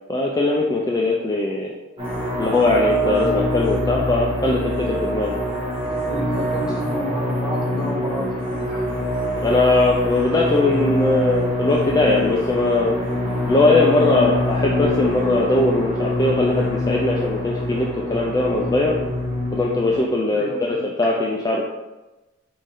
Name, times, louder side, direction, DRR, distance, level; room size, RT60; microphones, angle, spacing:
voice 1, 0.1-1.7 2.4-5.4 9.4-13.0 13.5-19.0 19.5-20.5 21.0-21.6, left 2 dB, 20° left, -3 dB, 0.4 m, -20 dB
sound 1, 2.0-20.0, left 1 dB, 25° right, 1.4 m, -25 dB
voice 2, 5.9-8.9 20.3-20.9, equal, 5° right, -5 dB, 1.0 m, -30 dB
5.3 x 2.6 x 3.5 m, 1.1 s
head